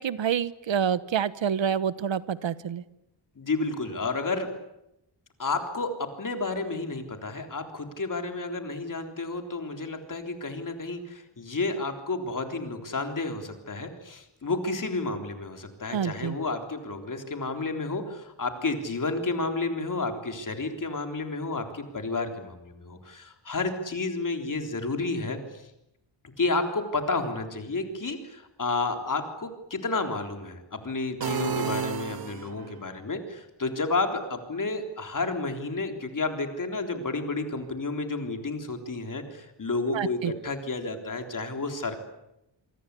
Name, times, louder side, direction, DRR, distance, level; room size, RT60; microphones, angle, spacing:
voice 1, 0.0-2.8 15.9-16.4 39.9-40.3, right 8 dB, 80° right, 16 dB, 1.1 m, -27 dB
voice 2, 3.4-4.5 5.4-5.9 6.2-25.6 26.2-42.0, left 3 dB, 45° left, 5 dB, 3.7 m, -31 dB
sound 1, 31.2-32.8, right 6 dB, 55° right, 1.2 m, -31 dB
27.0 x 24.0 x 8.4 m, 0.86 s
wide cardioid pair, 165°, 45 cm